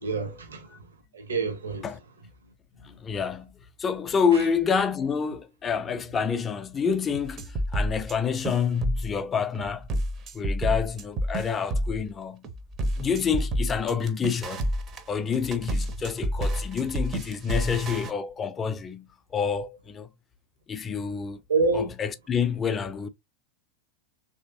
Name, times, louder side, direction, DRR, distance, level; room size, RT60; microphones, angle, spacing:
voice 1, 0.0-0.8 1.1-1.8 4.3-4.4 21.5-21.9, right 4 dB, 70° right, 0.8 m, -27 dB
voice 2, 2.8-9.9 10.3-12.4 13.0-14.7 15.1-20.1 20.7-21.4 21.7-23.1, left 6 dB, 20° left, 0.4 m, -28 dB
sound 1, 7.3-8.2 8.5-9.2 9.5-12.1 12.4-18.1, equal, 30° right, 0.6 m, -29 dB
3.1 x 2.7 x 2.5 m
figure-of-eight pair, 90°, 0 cm